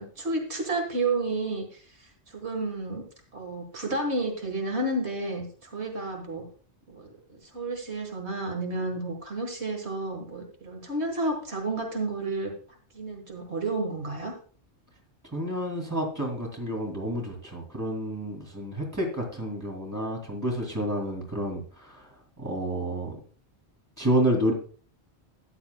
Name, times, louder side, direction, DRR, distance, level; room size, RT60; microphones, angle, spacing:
voice 1, 0.0-3.1 3.3-6.4 6.9-12.5 12.9-14.3, right 2 dB, 75° right, 4 dB, 1.8 m, -31 dB
voice 2, 15.3-22.1 22.4-23.2 24.0-24.5, right 1 dB, 15° right, 0 dB, 2.5 m, -29 dB
13.5 x 9.9 x 2.2 m, 0.42 s
omnidirectional pair, 1.1 m